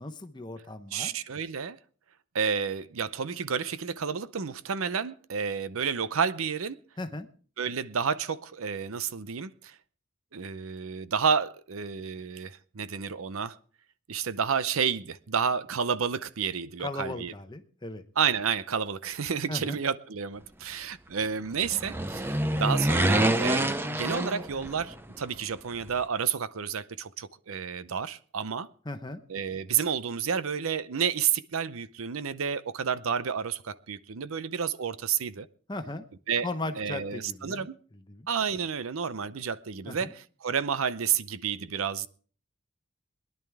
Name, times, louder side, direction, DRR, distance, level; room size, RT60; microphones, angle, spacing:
voice 1, 0.0-1.1 7.0-7.3 16.8-18.0 19.5-19.8 28.9-29.2 35.7-36.0 36.4-37.7 38.1-38.3 39.9-40.1, left 2 dB, 20° left, 0.9 m, -37 dB
voice 2, 0.9-1.8 2.3-6.8 7.6-9.7 10.3-13.6 14.1-17.3 18.2-28.7 29.3-35.5 36.3-36.5 36.8-37.7 38.3-42.1, right 7 dB, 80° right, 0.6 m, -30 dB
sound 1, 21.6-25.0 25.2-25.3, right 1 dB, 10° right, 0.6 m, -26 dB
22.0 x 11.0 x 3.5 m
head